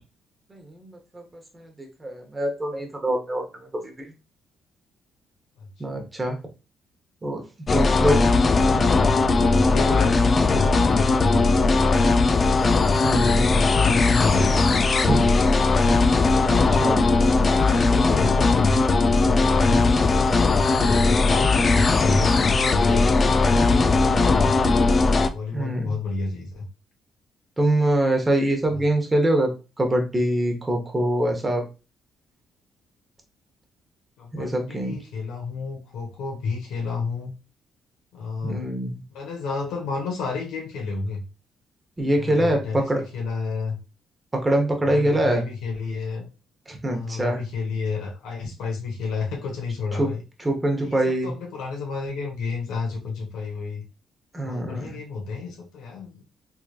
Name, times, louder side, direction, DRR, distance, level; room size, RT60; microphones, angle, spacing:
voice 1, 0.5-1.2 1.5-3.4 3.8-4.1 5.8-6.4 7.2-7.4 7.7-8.2 8.7-8.8 13.0-13.5 15.0-15.3 16.5-17.1 20.8-20.9 25.5-25.9 27.6-29.5 29.8-31.6 34.3-35.0 38.4-39.0 42.0-43.0 44.3-45.4 46.7-47.4 50.0-50.1 50.4-51.3 54.3-55.0, right 1 dB, 20° right, 3 dB, 1.0 m, -24 dB
voice 2, 5.6-6.1 8.3-11.8 12.9-14.7 17.1-20.1 20.5-25.0 25.3-26.7 28.7-28.8 34.2-37.3 38.1-38.7 39.1-41.2 42.1-43.8 44.9-46.3 46.9-50.2 50.8-53.8 54.4-56.2, left 4 dB, 90° left, 0 dB, 1.2 m, -31 dB
sound 1, 7.7-25.3, left 3 dB, 35° left, 0.4 m, -19 dB
3.6 x 3.1 x 2.4 m, 0.30 s
cardioid pair, 90°, 0 cm